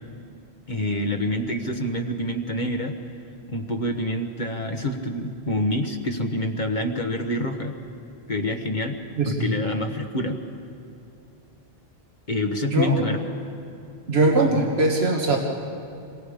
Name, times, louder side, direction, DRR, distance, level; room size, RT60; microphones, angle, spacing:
voice 1, 0.7-2.9 3.5-7.7 8.3-9.0 9.2-10.4 12.3-13.4, left 1 dB, 45° left, 3 dB, 1.5 m, -27 dB
voice 2, 9.2-9.5 12.7-12.9 14.1-15.4, right 2 dB, 75° right, 0 dB, 2.1 m, -21 dB
28.5 x 23.5 x 5.2 m, 2.7 s
omnidirectional pair, 1.1 m